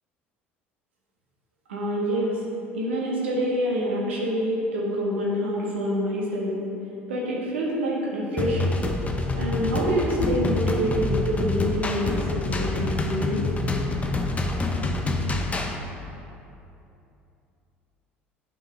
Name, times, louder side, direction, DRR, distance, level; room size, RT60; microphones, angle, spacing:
voice 1, 1.7-2.4 2.7-6.6 7.1-8.8 9.3-13.4, equal, 70° right, -3 dB, 1.5 m, -26 dB
sound 1, 8.4-15.8, left 2 dB, 20° left, 0.8 m, -26 dB
9.6 x 5.7 x 3.8 m, 2.8 s
figure-of-eight pair, 60°, 6 cm